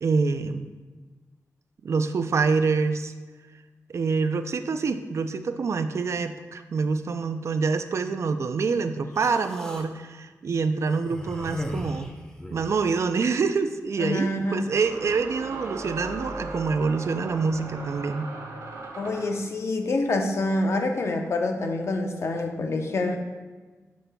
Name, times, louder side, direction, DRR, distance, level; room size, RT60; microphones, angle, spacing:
voice 1, 0.0-0.7 1.8-3.1 3.9-12.1 12.5-18.3, right 4 dB, 55° right, 9 dB, 0.4 m, -26 dB
Human voice, 9.1-9.9 10.8-12.8, equal, 10° left, 0.6 m, -35 dB
sound 1, 12.6-12.7 14.6-19.4, right 2 dB, 85° right, 1.1 m, -38 dB
voice 2, 14.0-14.7 19.0-23.2, left 2 dB, 50° left, 4 dB, 0.6 m, -26 dB
10.0 x 5.2 x 2.2 m, 1.3 s
wide cardioid pair, 175°, 6 cm